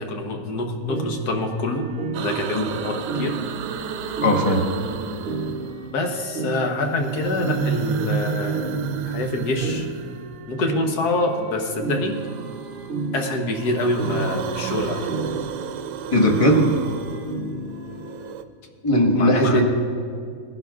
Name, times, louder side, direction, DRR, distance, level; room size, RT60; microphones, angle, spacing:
voice 1, 0.0-1.9 2.2-3.4 5.9-8.8 9.0-9.9 10.5-12.2 13.1-15.1 19.1-19.6, left 2 dB, 70° left, 3 dB, 1.6 m, -26 dB
sound 1, 0.9-18.3, right 3 dB, 45° right, 0.7 m, -33 dB
sound 2, 2.1-6.1 6.8-10.6 11.9-13.1 13.4-18.4, right 8 dB, 80° right, 1.2 m, -31 dB
voice 2, 4.2-4.6 16.1-16.8 18.8-19.6, equal, 20° left, 1 dB, 1.2 m, -18 dB
19.5 x 11.0 x 2.4 m, 2.3 s
omnidirectional pair, 1.8 m